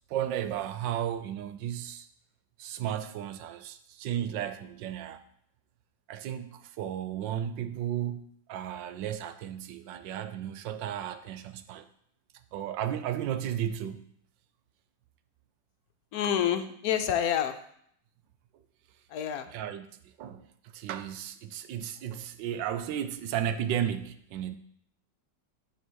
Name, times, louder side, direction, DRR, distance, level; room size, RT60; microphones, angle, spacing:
voice 1, 0.1-2.1 2.6-5.2 6.1-11.9 12.5-14.1 19.5-19.9 20.2-20.4 20.7-24.6, right 10 dB, 90° right, 1.3 m, -34 dB
voice 2, 16.1-17.6 19.1-19.5, left 9 dB, 70° left, 1.0 m, -28 dB
10.0 x 3.7 x 6.2 m
omnidirectional pair, 1.9 m